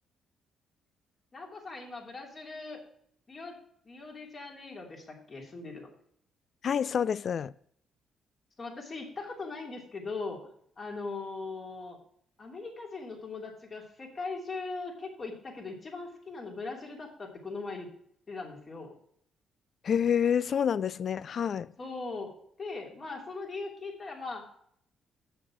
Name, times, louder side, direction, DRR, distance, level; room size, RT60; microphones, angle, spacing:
voice 1, 1.3-2.8 3.3-3.6 3.8-5.9 8.6-10.4 10.8-12.0 12.4-17.9 18.3-18.9 21.8-24.5, left 3 dB, 40° left, 2.9 m, -40 dB
voice 2, 6.6-7.5 19.8-21.7, left 8 dB, 55° left, 0.4 m, -28 dB
8.0 x 6.3 x 6.0 m
cardioid pair, 90°, 0 cm